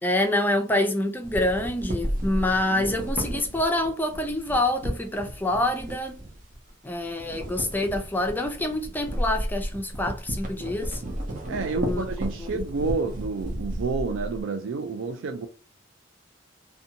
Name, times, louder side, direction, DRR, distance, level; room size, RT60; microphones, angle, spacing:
voice 1, 0.0-6.2 6.8-11.0 11.8-12.0 12.4-12.6, left 1 dB, 10° left, 0.4 m, -26 dB
sound 1, 1.2-6.7 7.0-14.4, equal, 45° right, 0.6 m, -33 dB
voice 2, 11.5-15.5, right 4 dB, 80° right, 0.4 m, -30 dB
2.6 x 2.2 x 2.7 m
head